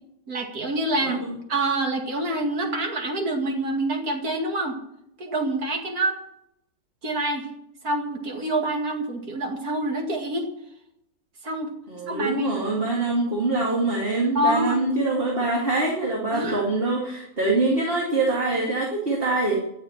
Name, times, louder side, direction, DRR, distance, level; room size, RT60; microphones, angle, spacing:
voice 1, 0.3-1.2 1.5-4.8 5.2-6.2 7.0-7.5 7.8-10.5 11.4-11.7 12.1-12.5 14.3-14.8 16.3-16.6, right 1 dB, 80° right, 2 dB, 2.7 m, -26 dB
voice 2, 1.0-1.4 11.9-19.5, right 2 dB, 40° right, -3 dB, 2.8 m, -24 dB
14.0 x 6.9 x 10.0 m, 0.81 s
omnidirectional pair, 1.5 m